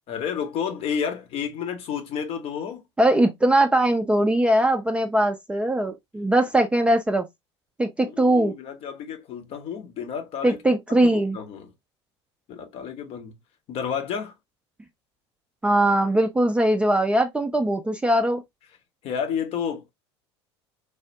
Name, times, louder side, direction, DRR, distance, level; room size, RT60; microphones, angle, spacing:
voice 1, 0.1-2.8 8.1-10.6 10.9-11.7 12.5-13.3 13.7-14.3 19.0-19.9, left 7 dB, 40° left, 0.8 m, -31 dB
voice 2, 3.0-7.3 7.8-8.5 10.4-11.4 15.6-18.4, right 1 dB, 5° right, 0.4 m, -21 dB
3.4 x 2.1 x 2.6 m
figure-of-eight pair, 70°, 15 cm